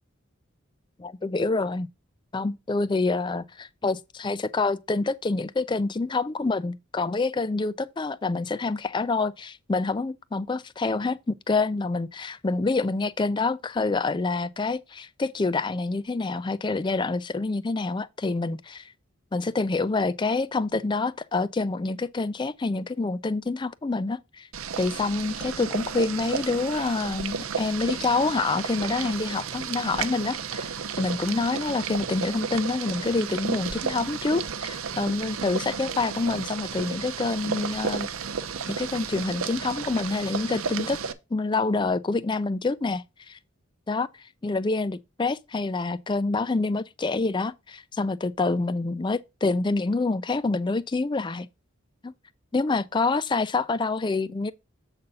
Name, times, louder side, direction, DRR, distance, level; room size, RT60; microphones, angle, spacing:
voice 1, 1.0-1.9 2.3-18.9 19.3-24.5 24.8-30.7 31.0-38.1 38.7-41.0 41.3-43.4 43.9-44.1 44.4-51.5 52.0-52.1 52.5-54.5, left 3 dB, 20° left, 0.3 m, -27 dB
Boiling, 24.5-41.1, right 6 dB, 85° right, 0.7 m, -33 dB
7.8 x 4.1 x 5.2 m
head